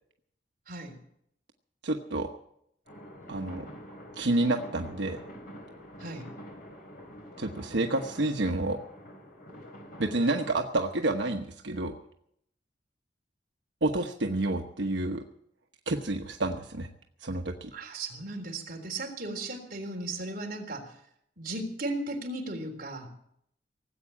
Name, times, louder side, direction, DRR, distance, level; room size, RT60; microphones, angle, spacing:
voice 1, 1.8-2.3 3.3-3.7 4.2-5.2 7.4-8.8 10.0-12.0 13.8-15.2 15.9-16.9 17.2-17.7, right 2 dB, 90° right, 3 dB, 1.1 m, -29 dB
sound 1, 2.9-10.6, equal, 55° left, 3.9 m, -46 dB
voice 2, 17.7-20.9 21.4-23.1, right 2 dB, 50° right, 1 dB, 3.7 m, -36 dB
18.5 x 8.3 x 8.8 m, 0.72 s
head